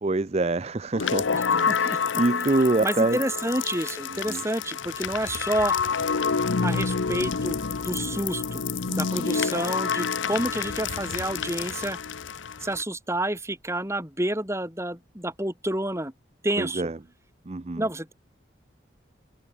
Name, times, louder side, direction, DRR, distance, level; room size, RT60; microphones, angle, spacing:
voice 1, 0.0-1.3 1.5-3.2 4.1-4.4 8.9-9.4 16.6-17.0 17.5-17.9, right 2 dB, 35° right, 0.5 m, -26 dB
sound 1, 0.9-12.8, left 5 dB, 80° left, 0.8 m, -28 dB
voice 2, 1.3-2.0 2.8-5.8 6.6-8.6 8.9-12.0 12.6-16.1 16.4-16.9 17.8-18.1, right 1 dB, 15° right, 4.0 m, -29 dB
open air
head